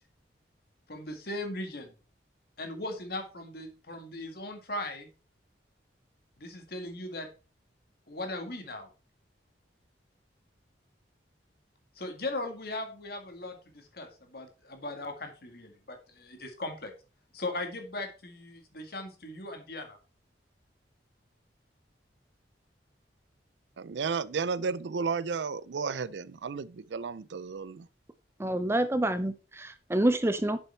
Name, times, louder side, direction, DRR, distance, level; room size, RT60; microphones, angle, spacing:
voice 1, 0.9-1.9 2.6-5.1 6.4-7.3 8.1-8.9 12.0-16.9 17.3-20.0, left 2 dB, 55° left, 2.0 m, -38 dB
voice 2, 23.8-27.9, right 5 dB, 75° right, 0.5 m, -33 dB
voice 3, 28.4-30.6, right 1 dB, 15° right, 0.5 m, -27 dB
7.1 x 6.8 x 4.4 m
head